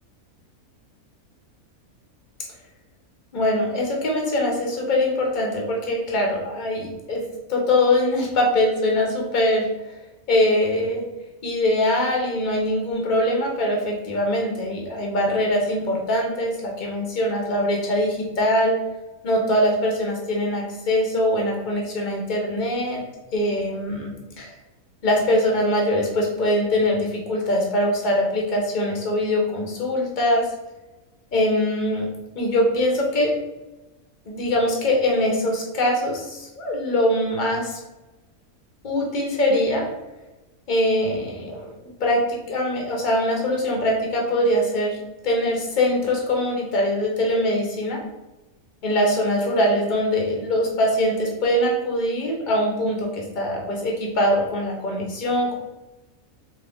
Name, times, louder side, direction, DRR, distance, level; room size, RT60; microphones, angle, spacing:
voice 1, 3.3-7.2 7.5-9.7 10.3-11.0 11.4-18.8 19.2-23.0 23.3-24.1 24.4-24.5 25.0-30.5 31.3-32.1 32.4-33.3 34.3-37.8 38.8-39.8 40.7-48.0 48.8-55.5, left 1 dB, 35° left, -1 dB, 1.0 m, -22 dB
3.9 x 3.0 x 3.6 m, 1.1 s
omnidirectional pair, 1.5 m